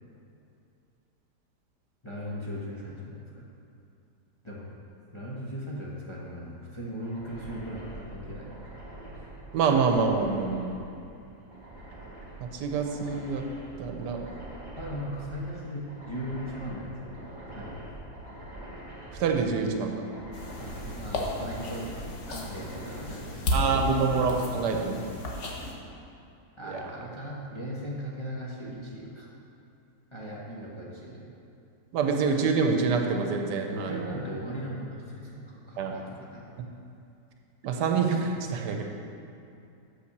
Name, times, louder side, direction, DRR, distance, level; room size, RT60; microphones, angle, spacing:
voice 1, 2.0-3.5 4.4-4.7 5.1-8.6 14.7-17.9 20.5-21.9 22.3-24.1 26.6-29.3 30.1-31.3 33.7-36.5, equal, 20° left, -5 dB, 0.8 m, -38 dB
sound 1, 7.0-25.9, right 1 dB, 35° right, 1.6 m, -45 dB
voice 2, 9.5-10.8 12.5-13.4 13.8-14.2 19.2-19.9 23.5-25.0 26.6-26.7 31.9-34.2 35.8-35.9 37.6-38.8, right 5 dB, 80° right, 3 dB, 1.3 m, -26 dB
sound 2, 20.3-25.7, left 1 dB, 50° left, 1.1 m, -34 dB
6.2 x 5.7 x 6.6 m, 2.6 s
omnidirectional pair, 1.8 m